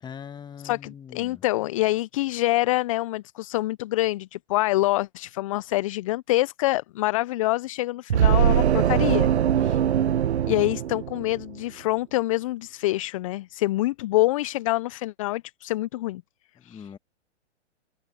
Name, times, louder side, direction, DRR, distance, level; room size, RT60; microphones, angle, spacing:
voice 1, 0.0-1.4 16.6-17.0, left 7 dB, 10° left, 1.7 m, -41 dB
voice 2, 0.6-9.3 9.6-9.8 10.5-16.2 16.6-16.9, left 18 dB, 30° left, 0.5 m, -26 dB
sound 1, 8.1-11.6, right 10 dB, 65° right, 1.2 m, -22 dB
hypercardioid pair, 125°, 36 cm